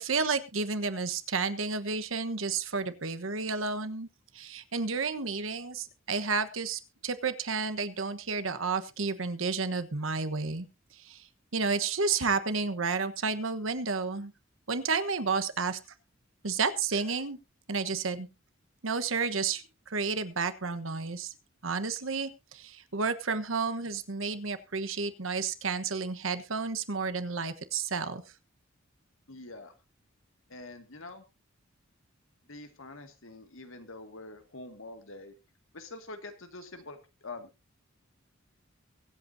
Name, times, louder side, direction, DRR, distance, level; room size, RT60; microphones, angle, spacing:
voice 1, 0.0-4.1 4.3-10.7 10.9-11.3 11.5-14.3 14.7-15.8 16.4-17.4 17.7-18.3 18.8-21.3 21.6-28.2, right 4 dB, 75° right, 10 dB, 1.2 m, -31 dB
voice 2, 29.3-29.7 30.5-31.2 32.5-35.3 35.7-37.5, left 2 dB, 80° left, 7 dB, 2.1 m, -45 dB
23.5 x 8.2 x 2.7 m, 0.26 s
head